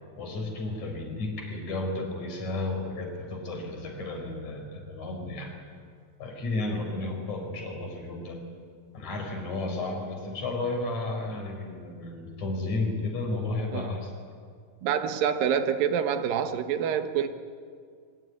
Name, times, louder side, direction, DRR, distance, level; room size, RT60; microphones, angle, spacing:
voice 1, 0.2-5.5 6.2-8.4 8.9-14.1, left 2 dB, 55° left, 3 dB, 5.7 m, -33 dB
voice 2, 14.8-17.3, right 8 dB, 80° right, 9 dB, 2.9 m, -26 dB
23.5 x 22.0 x 9.6 m, 2.1 s
omnidirectional pair, 4.0 m